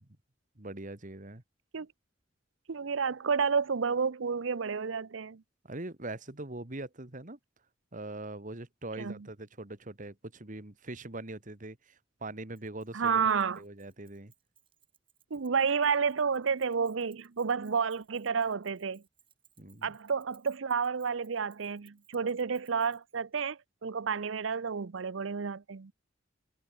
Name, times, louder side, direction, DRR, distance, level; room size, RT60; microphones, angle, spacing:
voice 1, 0.6-1.4 5.6-7.4 7.9-13.2 13.6-14.3 19.6-20.0, right 2 dB, 40° right, 2.0 m, -42 dB
voice 2, 2.7-5.4 9.0-9.2 12.9-13.6 15.3-19.0 19.8-25.9, right 6 dB, 90° right, 0.6 m, -30 dB
Keys jangling, 12.5-23.2, right 9 dB, 25° right, 4.9 m, -66 dB
head